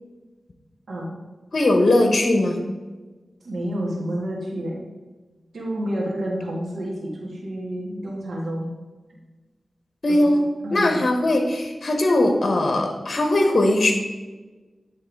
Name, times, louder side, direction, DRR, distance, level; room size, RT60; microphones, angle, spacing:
voice 1, 1.5-2.6 10.0-10.4 10.7-13.9, left 1 dB, 60° left, 4 dB, 1.0 m, -19 dB
voice 2, 3.4-4.8 5.5-8.7 10.1-10.3 10.6-11.1, equal, 85° right, -3 dB, 1.6 m, -29 dB
9.6 x 3.5 x 4.6 m, 1.2 s
cardioid pair, 50°, 0 cm